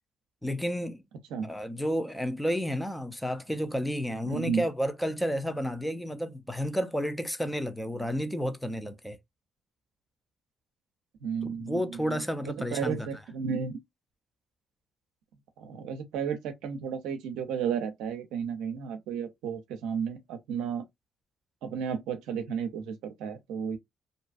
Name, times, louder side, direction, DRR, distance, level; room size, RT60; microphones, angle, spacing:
voice 1, 0.4-1.0 1.4-9.2 11.4-13.1, equal, 5° left, 0.6 m, -31 dB
voice 2, 4.3-4.7 11.2-12.2 12.5-13.8 15.6-20.8 21.6-23.8, right 7 dB, 80° right, 0.5 m, -33 dB
2.6 x 2.3 x 2.4 m
supercardioid pair, 55°, 0 cm